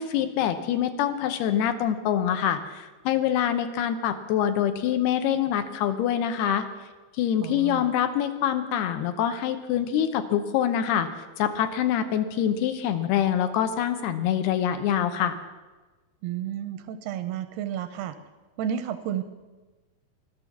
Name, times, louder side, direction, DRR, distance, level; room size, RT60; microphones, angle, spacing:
voice 1, 0.0-6.6 7.2-11.1 11.4-15.4, left 9 dB, 75° left, 9 dB, 2.7 m, -25 dB
voice 2, 7.4-7.9 16.2-18.2 18.6-19.2, right 10 dB, 80° right, 10 dB, 2.5 m, -31 dB
13.5 x 12.5 x 7.2 m, 1.2 s
omnidirectional pair, 4.8 m